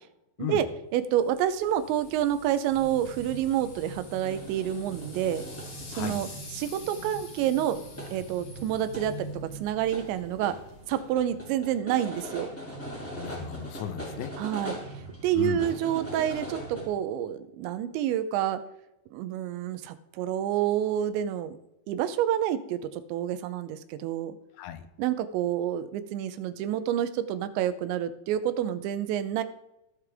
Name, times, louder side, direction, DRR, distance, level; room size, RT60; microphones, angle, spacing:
voice 1, 0.9-5.4 6.0-6.3 6.5-7.8 8.1-10.6 10.9-12.5 14.4-14.8 15.2-18.6 19.1-21.6 21.9-24.4 25.0-29.4, right 11 dB, 90° right, 11 dB, 3.0 m, -28 dB
sound 1, 1.1-11.4, left 2 dB, 40° left, 2.5 m, -49 dB
sound 2, 2.7-16.9, right 1 dB, 10° left, 0.6 m, -41 dB
voice 2, 13.1-14.3 15.3-15.7 24.6-24.8, left 10 dB, 85° left, 9 dB, 3.1 m, -35 dB
17.5 x 6.7 x 3.5 m, 0.89 s
omnidirectional pair, 5.1 m